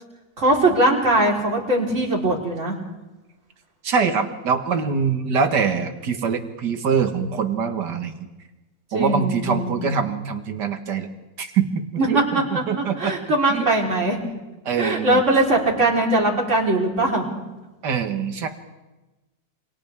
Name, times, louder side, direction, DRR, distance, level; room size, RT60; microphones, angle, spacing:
voice 1, 0.4-2.8 8.9-9.9 12.0-14.3 14.8-17.3, right 2 dB, 45° right, -3 dB, 4.3 m, -21 dB
voice 2, 3.8-8.2 8.9-11.1 11.4-12.2 12.5-13.1 13.5-13.7 14.7-15.2 17.8-18.5, right 6 dB, 80° right, 6 dB, 2.1 m, -24 dB
28.0 x 26.5 x 3.6 m, 1.1 s
omnidirectional pair, 1.8 m